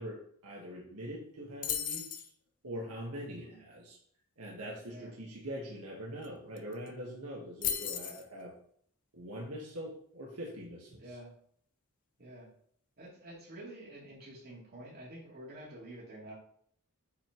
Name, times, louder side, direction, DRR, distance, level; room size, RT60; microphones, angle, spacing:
voice 1, 0.0-2.3 2.6-4.0 4.4-8.5 9.1-11.0, equal, 85° right, -3 dB, 1.8 m, -43 dB
sound 1, 1.6-2.3 6.2-6.3 6.6-6.9 7.6-8.2, left 9 dB, 40° left, 0.6 m, -35 dB
voice 2, 11.0-11.3 12.2-12.5 13.0-16.3, right 1 dB, 45° right, -5 dB, 3.4 m, -49 dB
8.5 x 5.4 x 3.2 m, 0.62 s
head